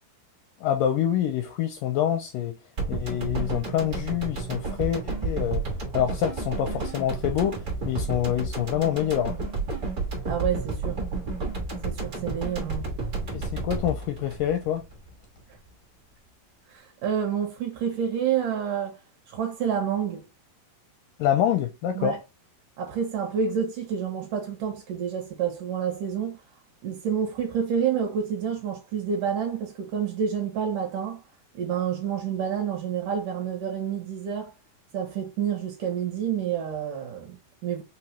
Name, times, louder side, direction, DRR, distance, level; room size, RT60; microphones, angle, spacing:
voice 1, 0.6-2.6 2.9-5.6 5.9-9.4 13.3-14.9 21.2-22.2, left 10 dB, 80° left, 1.9 m, -26 dB
sound 1, 2.8-15.1 15.4-15.5, right 3 dB, 55° right, 1.1 m, -31 dB
voice 2, 10.3-11.0 11.8-12.9 16.7-19.0 19.3-20.3 22.0-22.2 22.8-26.4 26.8-31.2 31.6-34.5 34.9-37.8, right 8 dB, 70° right, 2.3 m, -28 dB
5.6 x 2.3 x 2.8 m
omnidirectional pair, 4.2 m